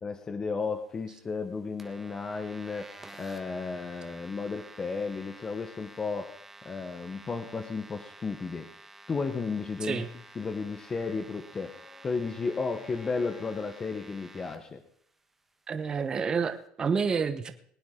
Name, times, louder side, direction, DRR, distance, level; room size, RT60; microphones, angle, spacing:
voice 1, 0.0-2.9 3.2-6.3 6.6-8.7 9.1-10.0 10.4-11.7 12.0-14.8, left 4 dB, 25° left, 7 dB, 1.1 m, -33 dB
sound 1, 1.8-14.6, right 2 dB, 10° right, 1.3 m, -51 dB
Bowed string instrument, 10.6-13.8, left 6 dB, 90° left, 6.1 m, -53 dB
voice 2, 15.7-17.5, right 5 dB, 30° right, 8 dB, 1.1 m, -29 dB
20.5 x 9.5 x 3.9 m, 0.65 s
supercardioid pair, 115°, 3 cm